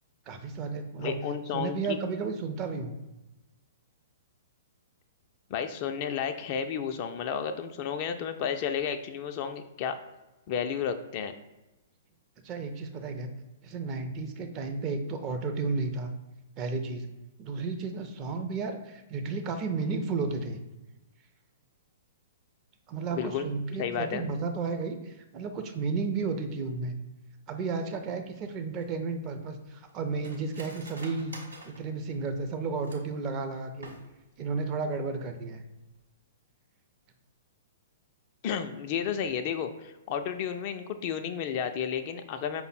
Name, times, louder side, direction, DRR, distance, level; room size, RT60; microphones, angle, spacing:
voice 1, 0.3-1.2 1.5-3.0 12.4-13.3 13.6-16.1 16.6-17.1 17.4-20.6 22.9-27.0 27.5-31.4 31.6-33.9 34.4-35.6, right 4 dB, 30° right, 7 dB, 0.5 m, -33 dB
voice 2, 1.0-2.0 5.5-10.0 10.5-11.3 23.1-23.5 23.8-24.2 38.4-42.6, left 7 dB, 40° left, 8 dB, 0.3 m, -32 dB
Cutlery silverware, 28.8-33.2 33.7-34.4 34.7-34.8 35.1-35.5 35.8-36.0, right 2 dB, 80° right, 0.9 m, -49 dB
5.2 x 2.0 x 4.1 m, 1.0 s
figure-of-eight pair, 115°, 0 cm